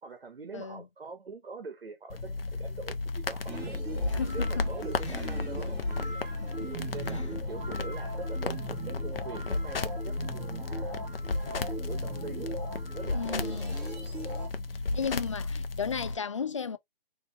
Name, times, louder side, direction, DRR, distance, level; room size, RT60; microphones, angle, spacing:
voice 1, 0.0-3.8 4.1-5.8 6.9-11.0 11.4-12.5 12.9-13.5 14.9-15.1, right 4 dB, 75° right, 1.3 m, -44 dB
voice 2, 0.5-0.8 4.1-4.7 5.1-5.3 6.0-6.1 6.4-6.7 13.1-13.7 14.9-16.8, left 6 dB, 35° left, 0.4 m, -35 dB
sound 1, 2.1-16.1, left 3 dB, 70° left, 0.8 m, -34 dB
sound 2, 3.5-14.5, right 4 dB, 10° right, 1.4 m, -41 dB
4.1 x 3.2 x 2.9 m
figure-of-eight pair, 145°, 30 cm